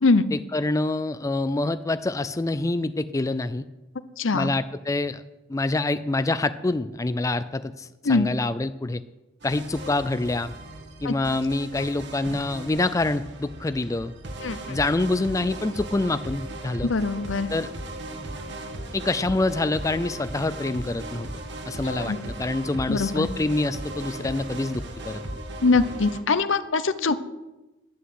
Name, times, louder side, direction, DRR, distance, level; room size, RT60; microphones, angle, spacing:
voice 1, 0.3-3.6 4.3-5.2 5.5-9.0 9.4-10.5 11.0-14.1 14.7-16.9 17.5-17.7 18.9-21.3 21.7-25.2, left 2 dB, 15° left, 12 dB, 0.4 m, -26 dB
voice 2, 4.2-4.5 8.1-8.3 11.0-11.1 14.4-14.8 16.9-17.5 21.8-22.2 22.9-23.3 25.6-27.2, left 3 dB, 70° left, 13 dB, 0.8 m, -22 dB
sound 1, 9.4-26.2, right 1 dB, 60° right, 1.7 m, -37 dB
11.5 x 10.0 x 7.9 m, 1.1 s
head